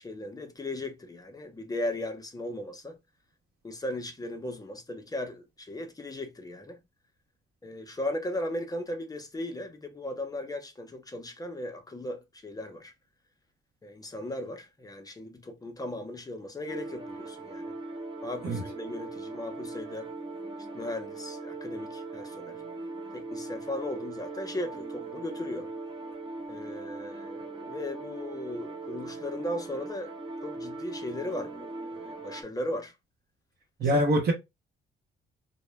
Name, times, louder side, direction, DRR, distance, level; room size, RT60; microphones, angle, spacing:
voice 1, 0.0-3.0 3.6-6.8 7.6-12.9 13.8-17.7 18.2-20.1 20.7-22.6 23.1-25.7 26.5-30.1 30.4-32.9 33.9-34.0, left 1 dB, 20° left, 0.5 m, -37 dB
sound 1, 16.7-32.4, right 3 dB, 25° right, 0.6 m, -40 dB
voice 2, 33.8-34.3, right 1 dB, 55° right, 0.8 m, -24 dB
2.1 x 2.1 x 3.1 m
cardioid pair, 90°, 20 cm